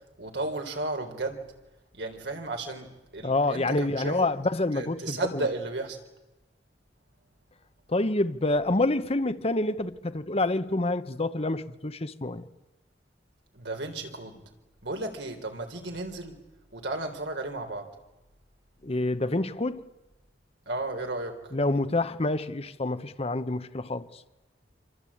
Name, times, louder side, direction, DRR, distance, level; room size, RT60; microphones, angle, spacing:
voice 1, 0.2-1.5 1.9-4.3 4.7-6.0 13.5-14.4 14.8-16.4 16.7-17.9 20.7-21.4, right 2 dB, 75° right, 3.8 m, -34 dB
voice 2, 3.2-5.5 7.9-12.5 18.8-19.8 21.5-24.2, left 2 dB, 35° left, 1.0 m, -27 dB
26.5 x 25.0 x 8.7 m
head